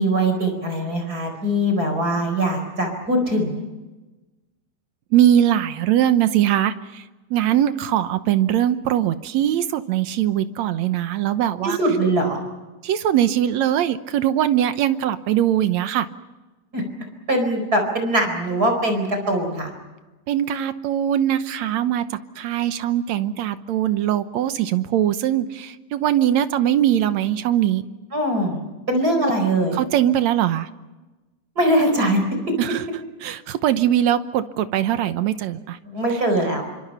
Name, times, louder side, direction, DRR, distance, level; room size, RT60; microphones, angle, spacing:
voice 1, 0.0-3.6 11.6-12.4 16.7-16.8 17.3-19.7 28.1-28.6 28.9-29.8 31.6-32.2 35.8-36.6, right 1 dB, 25° right, 4 dB, 4.9 m, -21 dB
voice 2, 5.1-7.0 7.3-11.8 12.8-16.1 20.3-22.1 22.4-27.9 29.2-29.3 29.7-30.7 32.6-32.8 33.2-35.8 36.1-36.2, right 11 dB, 70° right, 11 dB, 2.0 m, -21 dB
28.0 x 25.5 x 5.6 m, 1.1 s
omnidirectional pair, 3.8 m